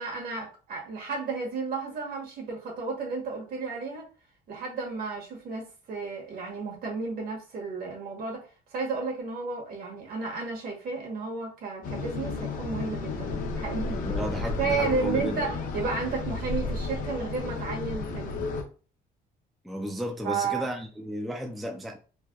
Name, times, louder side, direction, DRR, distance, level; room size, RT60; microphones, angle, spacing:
voice 1, 0.0-4.1 4.5-14.0 14.6-18.4 20.2-20.7, right 4 dB, 60° right, 1.2 m, -32 dB
sound 1, 11.8-18.6, left 3 dB, 55° left, 0.6 m, -32 dB
voice 2, 14.0-15.4 19.6-22.0, equal, ahead, 0.3 m, -33 dB
3.2 x 2.2 x 2.3 m
cardioid pair, 110°, 17 cm